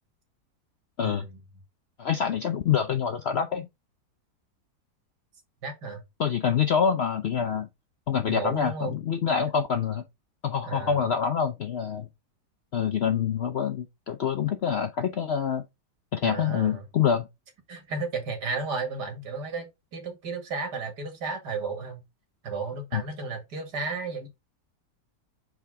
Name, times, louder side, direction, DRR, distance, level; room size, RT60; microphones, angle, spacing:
voice 1, 1.0-1.4 5.6-6.0 8.3-9.0 10.6-11.1 16.2-16.9 17.7-22.0 22.4-24.3, right 4 dB, 85° right, 2.5 m, -33 dB
voice 2, 2.0-3.7 6.2-7.7 8.1-10.0 10.4-12.1 12.7-15.6 16.1-17.3 22.9-23.0, left 7 dB, 65° left, 0.6 m, -26 dB
5.8 x 5.0 x 3.5 m
omnidirectional pair, 1.8 m